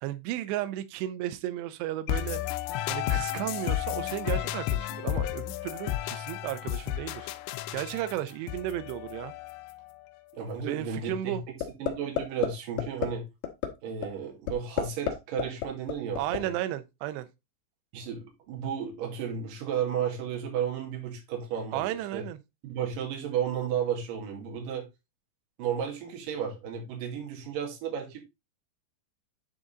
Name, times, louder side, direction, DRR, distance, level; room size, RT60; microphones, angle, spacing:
voice 1, 0.0-2.4 2.9-7.3 7.7-9.3 10.7-11.4 16.1-17.3 21.7-22.4, right 13 dB, 80° right, 2.7 m, -34 dB
sound 1, 2.1-9.9, left 13 dB, 85° left, 2.8 m, -32 dB
voice 2, 10.3-13.2 13.8-16.5 17.9-22.2 22.6-24.9 25.6-28.2, right 8 dB, 55° right, 3.1 m, -33 dB
sound 2, 11.6-11.9 12.2-12.5 12.8-13.1 13.4-13.7 14.0-14.1 14.5-15.1 15.4-16.4, left 11 dB, 65° left, 2.3 m, -27 dB
10.0 x 3.9 x 3.9 m
omnidirectional pair, 5.3 m